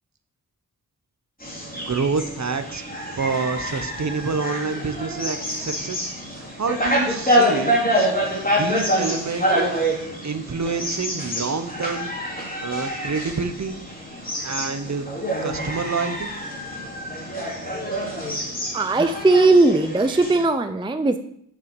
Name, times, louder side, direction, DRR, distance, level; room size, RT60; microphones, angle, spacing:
sound 1, 1.4-20.4, equal, 25° left, 2.5 m, -26 dB
voice 1, 1.9-8.2 8.6-9.7 10.2-12.1 12.6-13.8 14.4-15.0 15.4-16.3, right 4 dB, 50° right, 9 dB, 0.8 m, -28 dB
voice 2, 18.7-21.2, right 2 dB, 15° right, 9 dB, 0.4 m, -18 dB
6.7 x 5.7 x 5.3 m, 0.69 s
wide cardioid pair, 80°, 37 cm